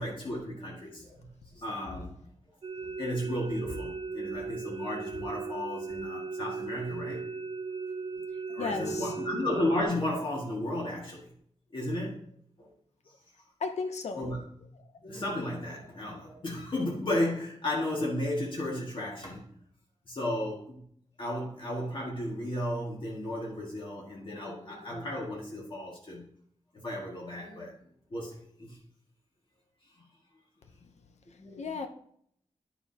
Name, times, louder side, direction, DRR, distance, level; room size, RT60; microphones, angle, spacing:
voice 1, 0.0-2.1 3.0-7.2 8.5-11.3 11.7-12.2 12.6-12.7 14.2-14.4 15.0-19.4 20.1-20.8 21.2-26.2 26.7-27.7 28.1-28.8 31.4-31.8, left 1 dB, 50° left, 2.0 m, -34 dB
sound 1, 2.6-9.8, right 4 dB, 60° right, 0.8 m, -37 dB
voice 2, 8.6-9.1 13.6-14.3 31.6-31.9, left 4 dB, 85° left, 0.8 m, -34 dB
9.8 x 6.8 x 2.9 m
wide cardioid pair, 135°, 11 cm